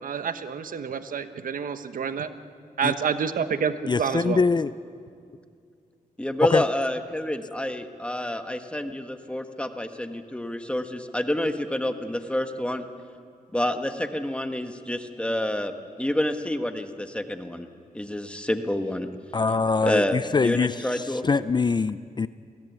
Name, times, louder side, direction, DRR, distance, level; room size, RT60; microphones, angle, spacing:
voice 1, 0.0-2.3 2.8-4.4, right 6 dB, 70° right, 10 dB, 1.1 m, -28 dB
voice 2, 3.9-4.7 6.5-6.6 19.3-22.3, left 4 dB, 30° left, 14 dB, 0.5 m, -23 dB
voice 3, 6.2-12.8 13.5-15.7 16.0-17.7 17.9-19.1 19.8-21.2, left 1 dB, 10° left, 6 dB, 1.6 m, -28 dB
21.5 x 17.0 x 9.5 m, 2.2 s
cardioid pair, 80°, 15 cm